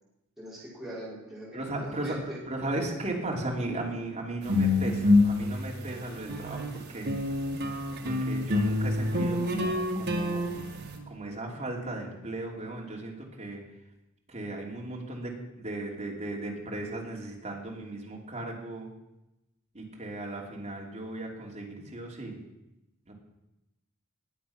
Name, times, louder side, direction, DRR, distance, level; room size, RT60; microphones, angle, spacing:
voice 1, 0.4-2.4, right 1 dB, ahead, -8 dB, 4.9 m, -42 dB
voice 2, 1.5-7.3 8.0-10.5 11.1-13.6 14.3-18.9 19.7-22.4 23.1-23.2, right 2 dB, 35° right, -1 dB, 2.9 m, -36 dB
sound 1, 4.4-6.7 7.1-11.0, left 2 dB, 55° right, 2.1 m, -27 dB
20.0 x 7.8 x 5.9 m, 0.94 s
head